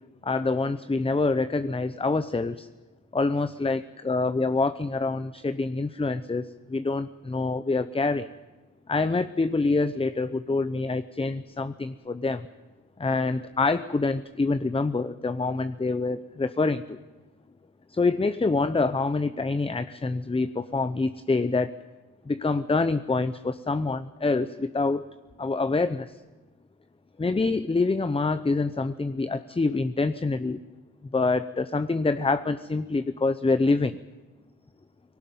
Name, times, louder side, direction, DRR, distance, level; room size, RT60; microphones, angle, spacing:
voice 1, 0.2-2.7 3.1-8.3 8.9-12.5 13.0-17.0 17.9-21.7 22.2-25.0 25.4-26.2 27.2-30.6 31.1-34.0, left 3 dB, 15° left, 12 dB, 0.8 m, -26 dB
19.0 x 18.0 x 9.2 m, 1.2 s
cardioid pair, 75°, 33 cm